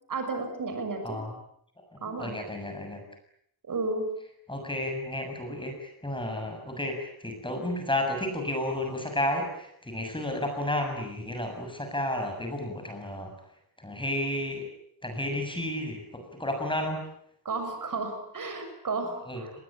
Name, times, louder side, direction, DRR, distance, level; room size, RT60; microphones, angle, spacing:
voice 1, 0.1-1.2 2.0-2.3 3.7-4.1 17.4-19.5, right 3 dB, 50° right, 6 dB, 6.8 m, -32 dB
voice 2, 1.9-3.0 4.5-13.3 13.8-14.7 15.0-17.1 19.3-19.4, left 1 dB, 10° left, 4 dB, 7.3 m, -32 dB
29.5 x 22.0 x 8.8 m, 0.71 s
wide cardioid pair, 175°, 40 cm